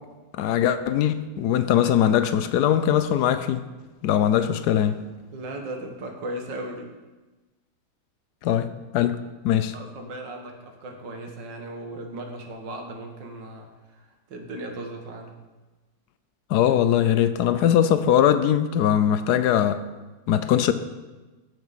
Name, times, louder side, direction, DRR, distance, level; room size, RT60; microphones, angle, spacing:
voice 1, 0.4-3.6 4.0-5.0 8.4-8.7 8.9-9.2 9.4-9.7 16.5-19.8 20.3-20.7, left 10 dB, 75° left, 11 dB, 1.1 m, -21 dB
voice 2, 5.3-6.9 9.7-15.3, right 1 dB, 90° right, 3 dB, 2.0 m, -37 dB
14.5 x 6.9 x 4.1 m, 1.2 s
omnidirectional pair, 1.9 m